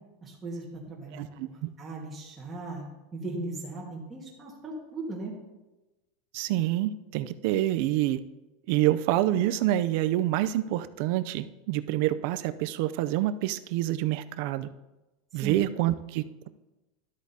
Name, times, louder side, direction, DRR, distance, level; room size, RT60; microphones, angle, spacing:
voice 1, 0.2-2.9 3.1-5.3 15.4-15.7, right 2 dB, 15° right, -4 dB, 1.5 m, -38 dB
voice 2, 1.1-1.7 6.3-8.2 8.7-14.7 15.3-16.5, right 14 dB, 50° right, 13 dB, 0.4 m, -27 dB
12.5 x 8.1 x 2.7 m, 1.1 s
supercardioid pair, 175°, 0 cm